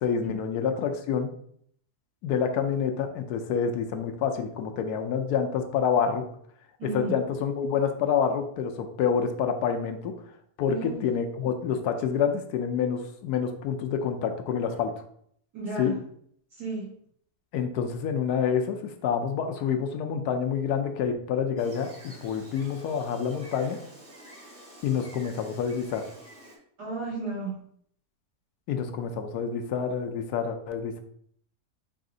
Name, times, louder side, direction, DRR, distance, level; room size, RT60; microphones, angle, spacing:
voice 1, 0.0-1.3 2.2-6.2 6.8-10.1 10.6-14.9 15.8-15.9 17.5-23.8 24.8-26.0 28.7-31.0, left 7 dB, 85° left, 6 dB, 1.1 m, -27 dB
voice 2, 6.8-7.1 10.7-11.0 15.5-15.9 16.5-16.9 26.8-27.6, right 3 dB, 85° right, -11 dB, 2.7 m, -33 dB
Gull seagull, 21.6-26.6, right 1 dB, 25° right, 0.9 m, -49 dB
5.0 x 2.7 x 3.7 m, 0.65 s
omnidirectional pair, 1.7 m